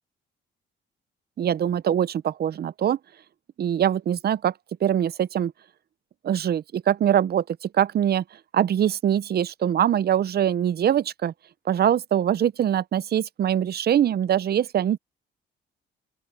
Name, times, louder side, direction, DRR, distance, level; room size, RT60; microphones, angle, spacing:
voice 1, 1.4-3.0 3.6-4.5 4.8-5.5 6.2-8.2 8.5-11.3 11.7-15.0, right 10 dB, 55° right, 0.7 m, -23 dB
open air
cardioid pair, 90°, 20 cm